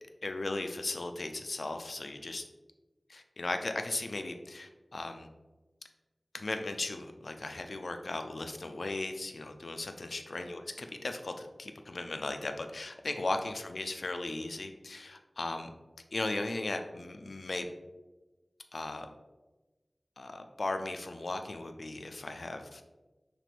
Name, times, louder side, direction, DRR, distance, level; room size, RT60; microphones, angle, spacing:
voice 1, 0.2-2.4 3.1-5.3 6.3-15.7 16.1-17.7 18.7-19.1 20.2-22.9, left 2 dB, 85° left, 6 dB, 0.4 m, -37 dB
6.0 x 2.5 x 3.3 m, 1.1 s
wide cardioid pair, 50°, 0 cm